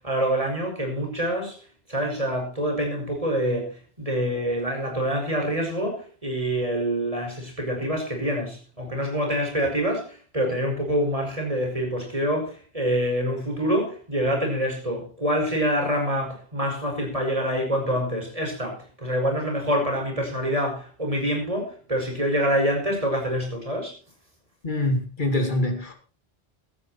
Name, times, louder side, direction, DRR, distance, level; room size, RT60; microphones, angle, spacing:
voice 1, 0.0-1.6 1.9-23.9, equal, 35° right, 1 dB, 6.1 m, -26 dB
voice 2, 24.6-25.9, left 1 dB, 50° left, 4 dB, 2.8 m, -24 dB
16.5 x 12.5 x 4.4 m, 0.36 s
omnidirectional pair, 1.1 m